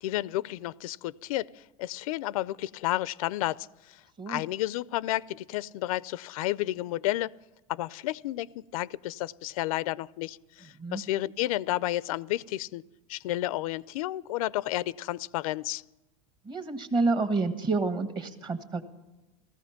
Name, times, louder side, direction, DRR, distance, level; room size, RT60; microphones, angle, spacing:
voice 1, 0.0-1.5 1.8-4.0 4.3-7.3 7.7-12.8 13.1-15.8, left 16 dB, 75° left, 20 dB, 0.5 m, -31 dB
voice 2, 16.4-18.8, right 3 dB, 25° right, 9 dB, 1.6 m, -28 dB
17.0 x 14.5 x 5.8 m, 1.1 s
supercardioid pair, 125°, 18 cm